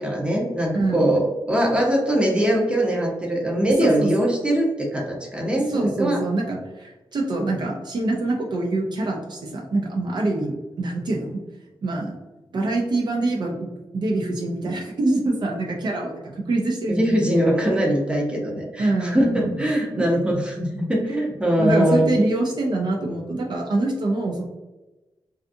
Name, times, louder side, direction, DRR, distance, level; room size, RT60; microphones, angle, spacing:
voice 1, 0.0-6.2 16.9-22.2, equal, 10° right, -1 dB, 0.6 m, -22 dB
voice 2, 0.7-1.0 3.8-4.1 5.7-11.4 11.8-12.2 12.5-13.7 13.9-17.0 18.8-19.5 20.0-20.3 21.6-24.4, right 2 dB, 55° right, 0 dB, 0.4 m, -25 dB
2.5 x 2.4 x 2.5 m, 1.1 s
wide cardioid pair, 105°, 9 cm